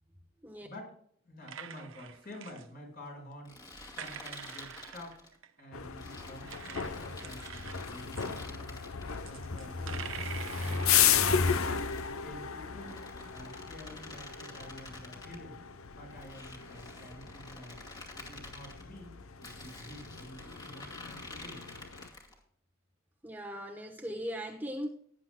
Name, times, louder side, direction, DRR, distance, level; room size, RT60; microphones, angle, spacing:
voice 1, 0.6-0.9 1.2-3.5 3.9-5.2 5.6-8.8 9.2-10.1 10.5-11.5 11.8-13.0 13.3-15.6 15.9-17.8 18.1-21.6, equal, 45° left, 4.9 m, -49 dB
sound 1, 1.4-2.7 3.9-5.7 6.4-7.8 8.2-8.3 9.1-10.9, right 8 dB, 65° right, 0.9 m, -45 dB
sound 2, 3.5-5.4 6.0-9.3 10.0-12.1 12.7-15.4 16.1-18.8 19.4-22.4, left 2 dB, 20° left, 2.2 m, -49 dB
sound 3, 5.7-22.1, left 7 dB, 75° left, 0.8 m, -34 dB
voice 2, 23.2-24.9, equal, 10° right, 1.1 m, -38 dB
18.0 x 9.9 x 2.3 m
head